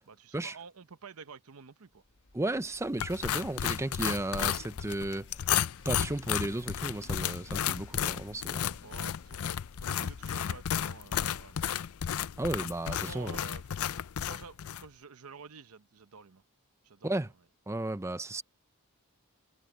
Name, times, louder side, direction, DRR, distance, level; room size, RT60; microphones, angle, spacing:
voice 1, 0.1-2.0 8.8-9.4 9.8-11.8 12.9-13.8 14.2-16.4 16.8-17.3, right 5 dB, 75° right, 0.8 m, -50 dB
sound 1, 1.9-12.3 12.5-12.6, left 3 dB, 55° left, 1.4 m, -59 dB
voice 2, 2.3-5.3 5.8-8.8 12.4-13.4 17.0-17.3 17.7-18.4, right 1 dB, 15° right, 0.6 m, -34 dB
sound 2, 3.0-14.9, left 9 dB, 75° left, 0.5 m, -33 dB
head